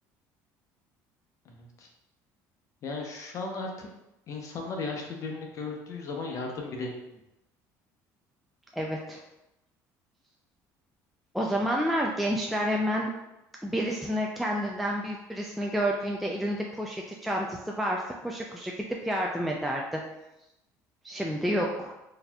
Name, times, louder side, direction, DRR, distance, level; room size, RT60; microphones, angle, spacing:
voice 1, 1.4-1.9 2.8-3.9 4.3-7.2, left 3 dB, 45° left, 1 dB, 0.7 m, -36 dB
voice 2, 8.7-9.2 11.3-13.1 13.6-18.7 19.0-20.0 21.0-22.0, equal, ahead, -1 dB, 0.3 m, -29 dB
3.9 x 2.7 x 2.2 m, 0.92 s
cardioid pair, 115°, 7 cm